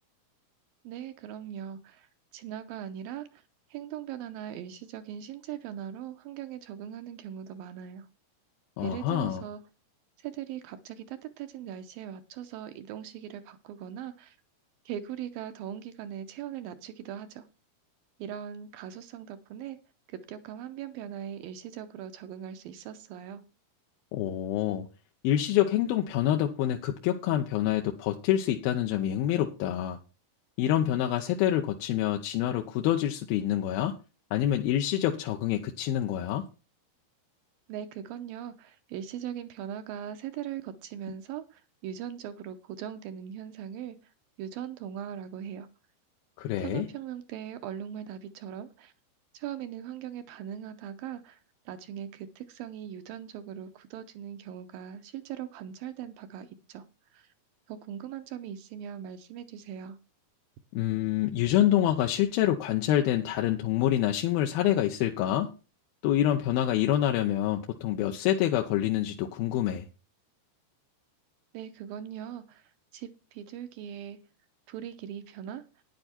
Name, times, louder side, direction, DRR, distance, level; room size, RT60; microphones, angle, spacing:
voice 1, 0.8-3.4 3.7-8.1 8.8-9.6 10.2-14.4 14.9-17.5 18.2-19.8 20.1-23.4 37.7-44.1 44.4-45.7 46.6-48.9 49.3-51.4 51.7-56.9 57.1-57.3 57.7-60.0 71.5-74.2 74.7-75.8, right 9 dB, 75° right, 10 dB, 2.3 m, -40 dB
voice 2, 8.8-9.4 24.1-24.9 25.2-30.0 30.6-34.0 34.3-36.5 46.4-46.9 60.7-65.5 66.0-69.9, left 12 dB, 75° left, 3 dB, 2.6 m, -26 dB
10.5 x 9.9 x 4.3 m, 0.31 s
omnidirectional pair, 4.6 m